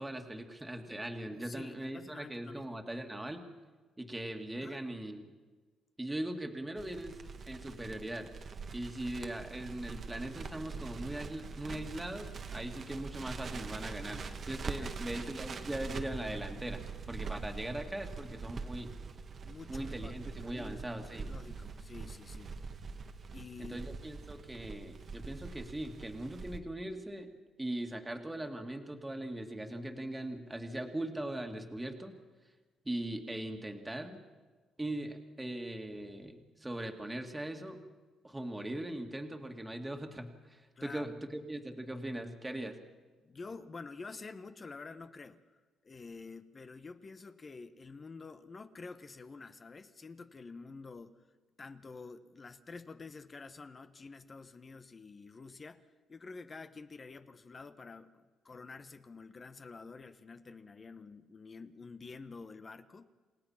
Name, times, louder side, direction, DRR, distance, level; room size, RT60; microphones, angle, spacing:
voice 1, 0.0-3.4 4.0-5.3 6.0-7.2 7.5-8.3 8.7-16.8 17.1-18.9 19.7-21.3 23.6-27.3 27.6-32.2 32.8-34.2 34.8-37.8 38.2-42.8, right 1 dB, 10° right, 4 dB, 2.2 m, -40 dB
voice 2, 1.3-2.8 4.6-4.8 14.8-14.9 19.4-20.1 20.4-20.8 21.2-22.6 23.3-23.8 40.8-41.1 43.2-51.2 51.6-63.1, left 4 dB, 35° left, 10 dB, 1.1 m, -49 dB
Crackle, 6.8-26.6, right 4 dB, 50° right, 1.5 m, -43 dB
28.5 x 17.0 x 5.8 m, 1.3 s
cardioid pair, 90°, 0 cm